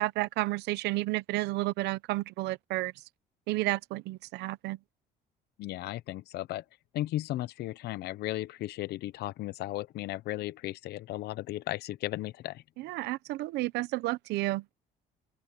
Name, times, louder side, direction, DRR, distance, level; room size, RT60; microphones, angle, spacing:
voice 1, 0.0-2.9 3.5-4.8 12.8-14.6, right 19 dB, 85° right, 0.9 m, -31 dB
voice 2, 5.6-6.6 6.9-12.6, left 15 dB, 75° left, 0.9 m, -35 dB
open air
cardioid pair, 110°, 17 cm